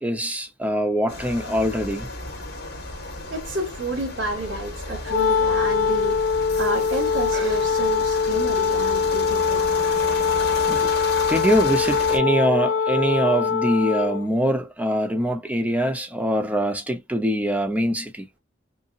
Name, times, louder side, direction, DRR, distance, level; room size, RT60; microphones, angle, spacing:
voice 1, 0.0-2.1 10.7-11.0 11.3-18.3, right 1 dB, 10° right, 0.8 m, -23 dB
sound 1, 1.1-12.2, left 2 dB, 55° left, 2.0 m, -33 dB
voice 2, 3.3-6.2 6.5-9.6 15.1-15.2, right 1 dB, 85° right, 1.7 m, -30 dB
Wind instrument woodwind instrument, 5.0-14.3, left 6 dB, 85° left, 0.4 m, -22 dB
5.5 x 2.1 x 2.7 m
head